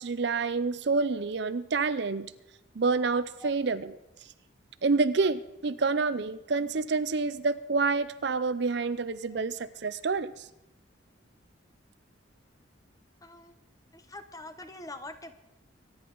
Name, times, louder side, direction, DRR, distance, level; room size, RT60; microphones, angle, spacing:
voice 1, 0.0-2.3 2.8-4.0 4.8-10.5, right 4 dB, 55° right, 14 dB, 0.5 m, -28 dB
voice 2, 13.2-13.5 13.9-15.3, left 2 dB, 20° left, 9 dB, 0.9 m, -44 dB
23.5 x 10.5 x 3.9 m, 0.86 s
head